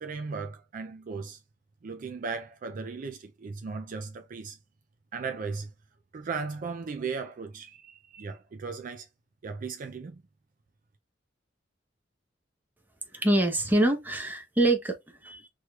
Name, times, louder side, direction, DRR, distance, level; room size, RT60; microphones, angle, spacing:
voice 1, 0.0-1.4 1.8-4.6 5.1-5.7 6.1-9.1 9.4-10.2, right 4 dB, 45° right, 0.4 m, -36 dB
voice 2, 13.1-15.5, right 1 dB, 10° right, 0.8 m, -25 dB
3.1 x 3.1 x 2.3 m
head